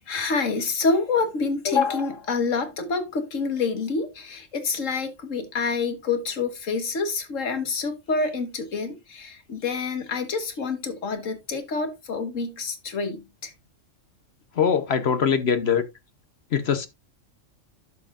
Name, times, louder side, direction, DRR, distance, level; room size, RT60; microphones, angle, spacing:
voice 1, 0.0-13.5, left 4 dB, 75° left, 1.8 m, -27 dB
voice 2, 14.6-15.8 16.5-16.9, left 7 dB, 55° left, 1.1 m, -22 dB
11.0 x 7.5 x 2.5 m
omnidirectional pair, 1.3 m